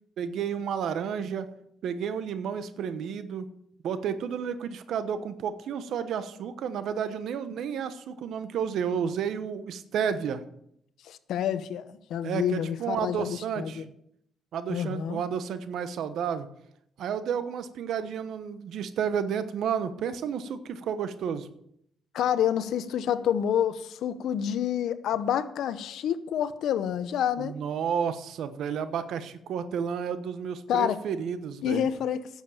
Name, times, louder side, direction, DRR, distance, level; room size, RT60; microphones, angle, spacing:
voice 1, 0.2-1.5 1.8-3.5 3.8-10.4 12.2-13.8 14.5-16.5 17.0-21.5 27.4-31.9, right 7 dB, 75° right, 1.0 m, -31 dB
voice 2, 11.0-13.9 14.7-15.2 22.1-27.5 30.7-31.0 31.6-32.3, left 9 dB, 75° left, 0.8 m, -28 dB
10.5 x 7.4 x 7.1 m
cardioid pair, 90°, 0 cm